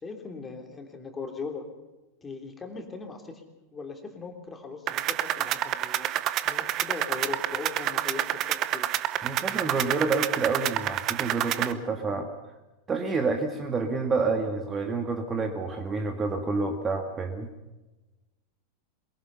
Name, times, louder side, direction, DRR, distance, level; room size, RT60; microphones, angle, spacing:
voice 1, 0.0-1.6 2.2-3.4 3.7-6.1 6.4-8.9, left 4 dB, 15° left, 4 dB, 3.3 m, -39 dB
sound 1, 4.9-11.7, right 13 dB, 35° right, 0.9 m, -29 dB
voice 2, 9.2-12.3 12.9-17.5, right 4 dB, 20° right, 5 dB, 1.8 m, -28 dB
22.5 x 22.5 x 5.7 m, 1.1 s
figure-of-eight pair, 90°, 0 cm